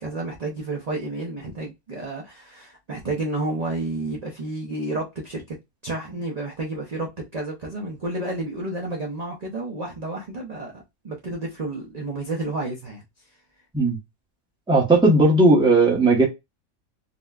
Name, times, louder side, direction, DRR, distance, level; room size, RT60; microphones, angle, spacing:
voice 1, 0.0-5.6 5.8-13.0, right 2 dB, 40° right, 0.6 m, -31 dB
voice 2, 14.7-16.2, right 2 dB, 5° right, 0.7 m, -16 dB
4.0 x 2.1 x 2.3 m
omnidirectional pair, 1.4 m